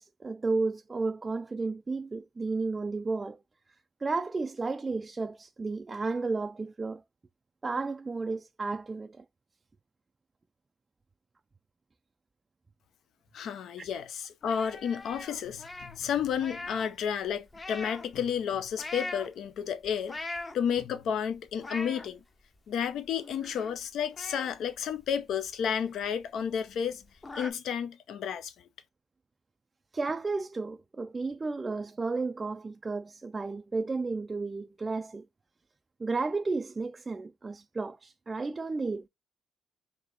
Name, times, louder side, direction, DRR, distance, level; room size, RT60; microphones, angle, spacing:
voice 1, 0.0-3.4 4.0-7.0 7.6-9.2 13.8-13.9 29.9-35.2 36.0-39.1, right 3 dB, 25° right, 0.3 m, -33 dB
voice 2, 13.3-20.2 20.5-22.2 22.7-27.0 27.3-28.7, left 8 dB, 75° left, 0.6 m, -32 dB
sound 1, 14.4-16.9 17.2-18.2 18.7-19.3 19.8-20.8 21.3-22.1 22.6-22.7 22.9-23.8 24.1-25.7 26.0-26.1 26.5-26.6 26.9-27.5, left 2 dB, 25° left, 0.7 m, -41 dB
4.0 x 2.7 x 3.5 m
cardioid pair, 90°, 0 cm